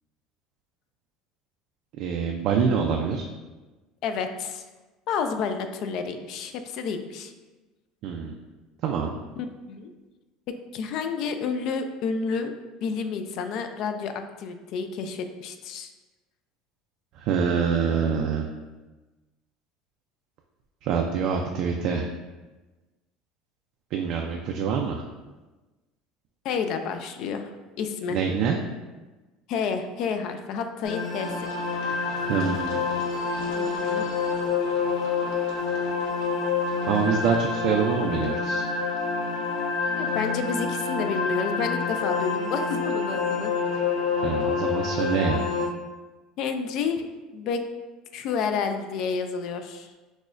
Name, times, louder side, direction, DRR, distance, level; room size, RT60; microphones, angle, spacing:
voice 1, 2.0-3.3 8.0-8.3 8.8-9.1 17.1-18.5 20.8-22.1 23.9-25.0 28.1-28.6 32.2-32.8 36.8-38.6 44.2-45.4, right 6 dB, 55° right, 1 dB, 0.3 m, -25 dB
voice 2, 4.0-4.6 5.1-7.3 9.4-9.9 10.5-12.5 12.8-15.9 26.4-27.5 27.8-28.2 29.5-31.5 33.6-34.1 40.0-43.5 46.4-47.1 47.3-47.6 48.1-49.9, left 5 dB, 55° left, 7 dB, 0.3 m, -30 dB
sound 1, 30.8-45.7, left 5 dB, 75° left, 0.9 m, -27 dB
6.0 x 2.1 x 2.4 m, 1.2 s
cardioid pair, 140°, 0 cm